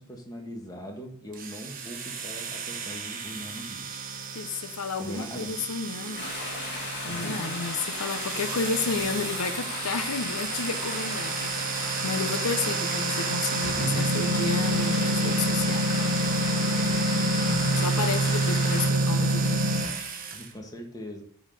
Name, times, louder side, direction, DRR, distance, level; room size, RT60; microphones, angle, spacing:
voice 1, 0.0-4.1 5.0-5.5 7.1-7.7 20.3-21.2, equal, 15° left, 1 dB, 1.6 m, -40 dB
sound 1, 1.3-20.4, right 2 dB, 40° right, 1.1 m, -29 dB
voice 2, 4.3-6.3 7.0-15.9 17.8-19.7, left 4 dB, 75° left, 8 dB, 0.8 m, -32 dB
sound 2, 6.2-18.9, left 2 dB, 50° left, 2.8 m, -35 dB
9.4 x 4.0 x 6.9 m, 0.62 s
head